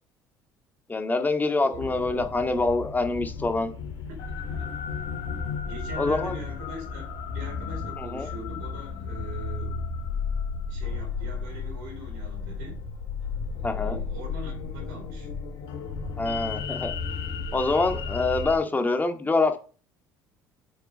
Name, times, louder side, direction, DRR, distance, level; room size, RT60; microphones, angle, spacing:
voice 1, 0.9-3.7 6.0-6.3 8.0-8.3 13.6-14.0 16.2-16.9 17.5-19.6, left 3 dB, 15° left, 7 dB, 1.9 m, -25 dB
voice 2, 1.6-2.0 4.1-4.7 5.7-9.8 10.7-12.8 13.5-15.3, equal, 65° right, 2 dB, 3.8 m, -42 dB
sound 1, 1.7-18.6, left 5 dB, 55° left, 2.4 m, -33 dB
8.1 x 6.6 x 5.2 m, 0.37 s
figure-of-eight pair, 60°, 10 cm